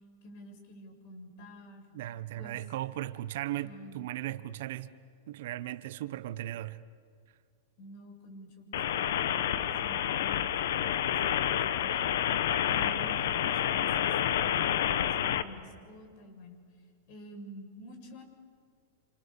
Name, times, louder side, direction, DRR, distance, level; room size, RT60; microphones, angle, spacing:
voice 1, 0.2-1.9 2.4-2.6 3.6-4.1 7.8-10.9 11.4-12.1 12.6-16.6 17.1-18.2, equal, 55° left, 7.0 m, -49 dB
voice 2, 1.9-4.9 5.3-6.8, right 14 dB, 65° right, 1.1 m, -37 dB
sound 1, 8.7-15.4, left 10 dB, 70° left, 1.3 m, -29 dB
28.5 x 28.0 x 7.2 m
hypercardioid pair, 125°, 0 cm